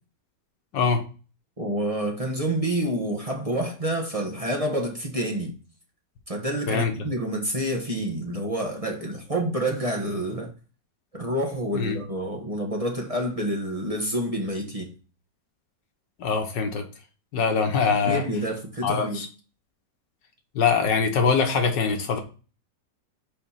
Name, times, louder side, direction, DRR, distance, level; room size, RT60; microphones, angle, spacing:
voice 1, 1.6-5.5 6.3-10.5 11.1-14.9 18.0-19.3, right 1 dB, 20° right, 1.2 m, -28 dB
voice 2, 16.2-16.8 17.3-18.2 18.8-19.3 20.6-22.2, left 5 dB, 80° left, 1.9 m, -23 dB
5.5 x 5.1 x 5.7 m
omnidirectional pair, 1.9 m